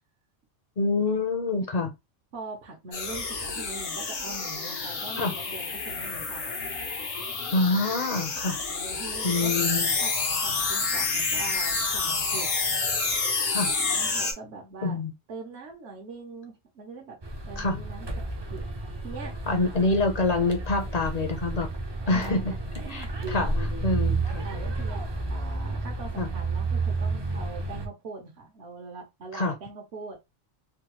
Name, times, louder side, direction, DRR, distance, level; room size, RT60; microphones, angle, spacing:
voice 1, 0.8-1.9 5.2-5.3 7.5-8.6 9.2-9.9 13.5-13.7 14.8-15.1 17.6-17.8 19.5-21.7 22.1-22.5 22.9-23.5 23.8-24.5 26.2-26.3 29.3-29.5, left 3 dB, 45° left, 0.6 m, -26 dB
voice 2, 2.3-6.5 8.7-9.6 10.0-12.5 13.8-15.0 15.3-17.2 17.5-18.6 19.0-19.4 22.0-24.1 24.4-30.2, right 3 dB, 65° right, 1.1 m, -42 dB
sound 1, 2.9-14.3, left 4 dB, 90° left, 1.3 m, -29 dB
sound 2, 17.2-27.9, right 3 dB, 35° right, 0.4 m, -31 dB
3.4 x 2.2 x 2.9 m
omnidirectional pair, 1.3 m